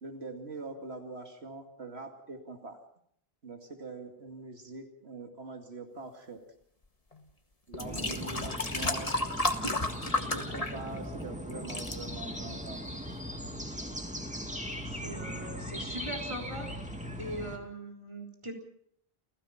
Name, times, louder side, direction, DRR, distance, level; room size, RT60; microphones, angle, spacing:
voice 1, 0.0-2.8 3.4-6.4 7.7-9.1 9.6-9.8 10.1-12.8, right 3 dB, 85° right, 4 dB, 2.6 m, -43 dB
sound 1, 7.1-7.2 7.7-11.2 11.5-12.0 12.7-12.8, left 2 dB, 35° left, 1.9 m, -32 dB
sound 2, 7.8-17.6, equal, 5° right, 2.4 m, -39 dB
voice 2, 14.8-16.7 17.2-18.5, right 1 dB, 25° right, 1 dB, 3.8 m, -40 dB
29.5 x 16.0 x 5.8 m, 0.67 s
omnidirectional pair, 1.1 m